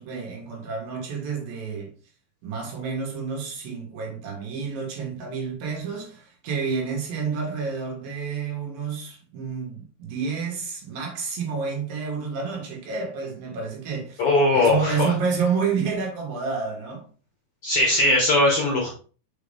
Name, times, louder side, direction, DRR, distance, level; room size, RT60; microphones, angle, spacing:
voice 1, 0.0-1.9 2.4-14.2 14.5-17.1, right 5 dB, 70° right, 3.5 m, -29 dB
voice 2, 14.2-15.1 17.6-18.9, left 2 dB, 55° left, 1.7 m, -20 dB
6.2 x 5.5 x 3.4 m
omnidirectional pair, 4.3 m